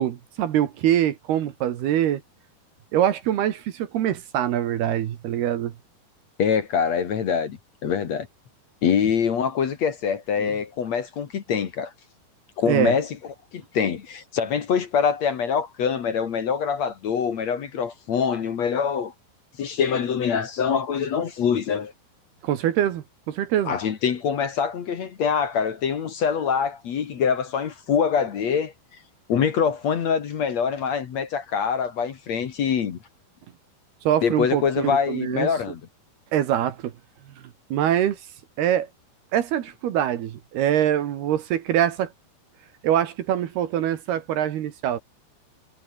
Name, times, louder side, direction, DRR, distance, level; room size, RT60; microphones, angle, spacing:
voice 1, 0.0-2.2 2.9-5.7 10.4-10.5 12.7-13.0 22.4-23.7 34.1-35.5 36.3-36.9 37.7-38.2 38.6-38.9 39.3-42.1 42.8-45.0, right 11 dB, 70° right, 3.5 m, -24 dB
voice 2, 6.4-8.3 8.8-11.9 12.6-13.1 13.5-19.1 19.6-21.9 23.7-28.7 29.3-33.0 34.2-35.8, left 7 dB, 50° left, 2.4 m, -24 dB
omnidirectional pair, 4.9 m